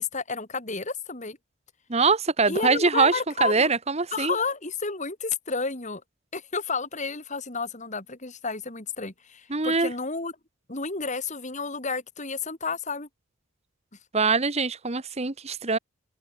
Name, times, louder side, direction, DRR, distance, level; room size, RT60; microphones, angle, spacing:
voice 1, 0.0-1.4 2.5-3.7 4.1-6.0 6.3-10.3 10.7-13.1, left 4 dB, 35° left, 2.7 m, -31 dB
voice 2, 1.9-4.3 9.5-9.9 14.1-15.8, right 4 dB, 30° right, 1.1 m, -23 dB
open air
head